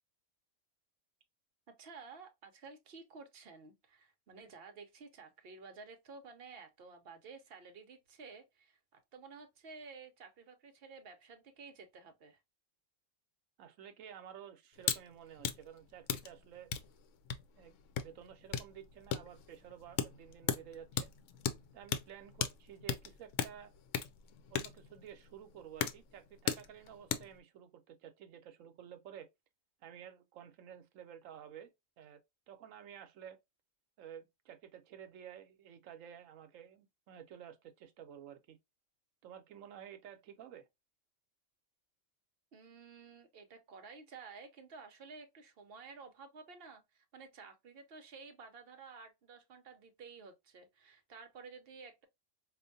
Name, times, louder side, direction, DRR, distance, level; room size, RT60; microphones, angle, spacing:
voice 1, 1.8-8.8 9.1-12.4 42.5-52.1, right 4 dB, 55° right, 0.8 m, -53 dB
voice 2, 13.6-16.7 17.5-21.1 21.7-23.7 24.5-29.3 29.8-31.7 32.0-32.2 32.5-33.4 34.0-38.6 39.2-40.6, right 9 dB, 80° right, 1.0 m, -52 dB
sound 1, 14.8-15.0 15.3-27.4, left 8 dB, 75° left, 0.9 m, -38 dB
4.4 x 2.5 x 2.6 m
omnidirectional pair, 1.4 m